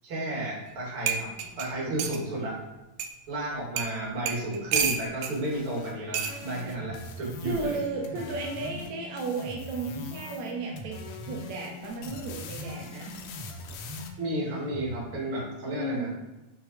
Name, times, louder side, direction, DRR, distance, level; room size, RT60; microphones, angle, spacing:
voice 1, 0.0-2.5 3.3-7.8 14.2-16.1, right 1 dB, 40° right, -5 dB, 2.9 m, -32 dB
sound 1, 0.7-0.8 1.1-2.2 3.0-3.1 3.8-3.9 4.3-5.3 6.1-6.4 7.5-7.8, right 7 dB, 85° right, 2.4 m, -29 dB
sound 2, 5.0-8.9 9.2-10.5 10.8-14.1, left 6 dB, 80° left, 2.2 m, -46 dB
sound 3, 6.4-15.0, equal, 20° right, 1.9 m, -42 dB
voice 2, 7.5-11.0 11.3-13.2 15.6-16.1, right 3 dB, 70° right, -1 dB, 2.0 m, -34 dB
5.8 x 5.4 x 4.5 m, 1.0 s
omnidirectional pair, 3.9 m